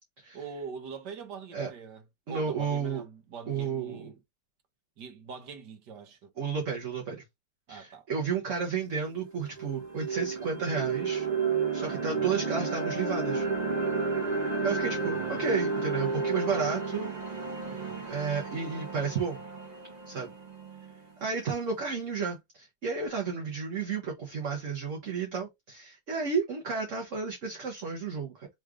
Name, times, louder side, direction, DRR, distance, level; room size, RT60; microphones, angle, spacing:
voice 1, 0.3-4.2 5.0-6.3 7.7-8.1 12.0-12.6 15.0-16.5 17.6-18.1, right 5 dB, 70° right, 1.6 m, -44 dB
voice 2, 2.3-3.0 3.5-4.1 6.4-7.2 7.7-11.3 11.7-13.5 14.6-17.1 18.1-19.4 20.1-20.3 21.2-28.5, right 5 dB, 50° right, 1.3 m, -32 dB
sound 1, 8.6-8.7 9.2-21.2, right 4 dB, 30° right, 0.9 m, -32 dB
3.7 x 3.2 x 3.6 m
omnidirectional pair, 2.0 m